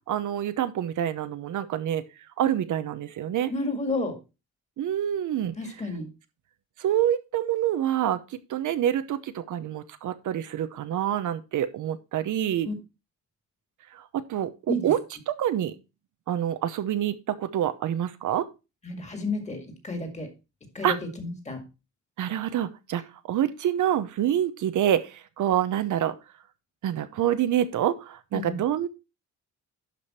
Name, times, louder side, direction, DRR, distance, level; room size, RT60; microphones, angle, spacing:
voice 1, 0.1-2.0 2.4-3.5 4.8-5.5 6.8-8.2 8.5-12.7 13.9-14.0 14.3-15.0 15.3-15.7 16.3-18.5 20.8-21.0 22.2-26.1 26.8-28.9, right 11 dB, 75° right, 11 dB, 0.9 m, -26 dB
voice 2, 3.5-4.2 5.6-6.1 12.6-12.7 14.7-14.8 18.8-20.3 20.7-21.6 28.3-28.6, left 2 dB, 20° left, 5 dB, 2.1 m, -31 dB
11.5 x 5.1 x 4.3 m, 0.28 s
wide cardioid pair, 170°, 31 cm